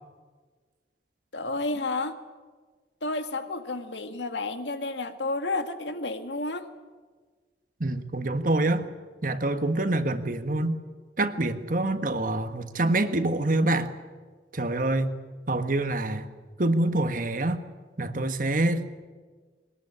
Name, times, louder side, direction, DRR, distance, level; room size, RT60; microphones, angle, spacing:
voice 1, 1.3-2.2 3.0-6.7, left 2 dB, 80° left, 8 dB, 1.8 m, -31 dB
voice 2, 7.8-8.8 9.2-10.8 11.2-13.9 14.5-15.2 15.5-16.3 16.6-17.6 18.0-18.9, right 2 dB, 50° right, 9 dB, 1.5 m, -26 dB
21.5 x 20.0 x 9.9 m, 1.4 s
head